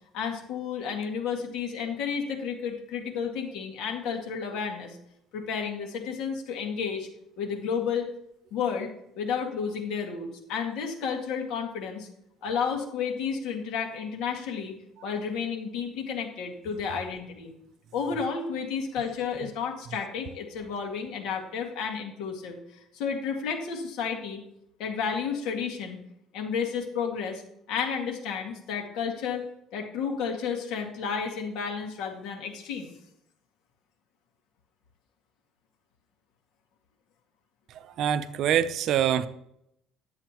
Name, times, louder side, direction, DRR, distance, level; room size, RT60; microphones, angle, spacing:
voice 1, 0.1-5.0 5.3-7.1 7.4-8.1 8.5-8.9 9.2-12.1 12.4-14.7 15.0-17.5 17.9-24.4 24.8-26.0 26.3-27.4 27.7-29.4 29.7-32.9, left 6 dB, 75° left, 1 dB, 2.0 m, -31 dB
voice 2, 37.7-39.3, right 9 dB, 60° right, 13 dB, 0.6 m, -25 dB
11.0 x 7.8 x 3.0 m, 0.77 s
cardioid pair, 125°, 0 cm